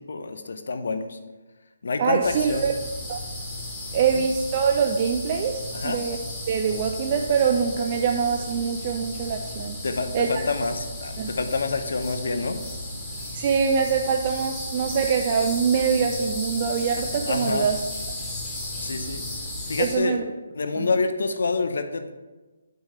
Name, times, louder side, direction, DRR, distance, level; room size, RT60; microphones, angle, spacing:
voice 1, 0.1-1.2 1.8-2.7 5.7-6.0 9.8-12.6 17.3-17.7 18.8-19.2 19.7-20.2 20.5-22.1, left 3 dB, 70° left, 8 dB, 0.7 m, -27 dB
voice 2, 2.0-2.7 3.1-3.2 3.9-6.2 6.5-9.8 10.1-10.4 11.2-11.3 13.3-17.8 19.8-20.2 20.7-20.9, right 6 dB, 35° right, 3 dB, 0.4 m, -24 dB
sound 1, 2.2-20.0, left 1 dB, 15° left, 1.6 m, -34 dB
8.1 x 3.2 x 5.5 m, 1.2 s
hypercardioid pair, 150°, 0 cm